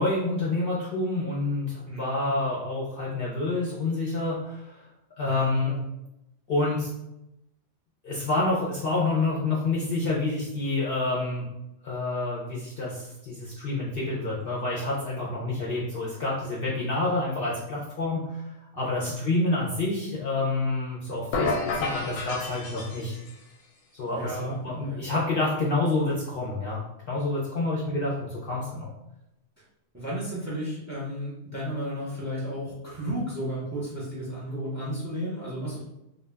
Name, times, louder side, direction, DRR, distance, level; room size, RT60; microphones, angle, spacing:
voice 1, 0.0-4.8 5.2-5.8 6.5-6.9 8.0-11.5 11.8-18.4 18.8-23.1 24.0-28.9, left 2 dB, 60° left, -6 dB, 0.6 m, -28 dB
voice 2, 1.9-2.3 5.2-5.8 18.8-19.1 24.1-24.6 24.8-25.0 29.9-35.8, right 1 dB, 20° right, -6 dB, 0.6 m, -33 dB
sound 1, 21.3-23.4, left 3 dB, 90° left, 1.0 m, -30 dB
2.2 x 2.2 x 3.3 m, 0.87 s
omnidirectional pair, 1.4 m